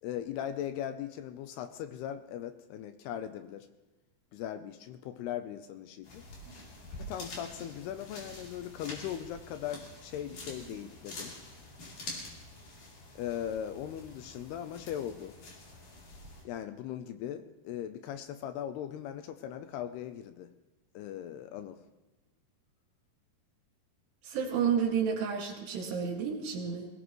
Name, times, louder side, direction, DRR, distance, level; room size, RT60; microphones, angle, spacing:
voice 1, 0.0-3.7 4.3-6.2 7.0-11.3 13.2-15.3 16.4-20.5 20.9-21.8, left 10 dB, 80° left, 9 dB, 2.5 m, -39 dB
sound 1, 6.0-16.4, left 2 dB, 50° left, 4.6 m, -47 dB
voice 2, 24.2-26.9, right 7 dB, 75° right, 1 dB, 4.2 m, -31 dB
22.5 x 18.0 x 3.1 m, 1.1 s
omnidirectional pair, 5.0 m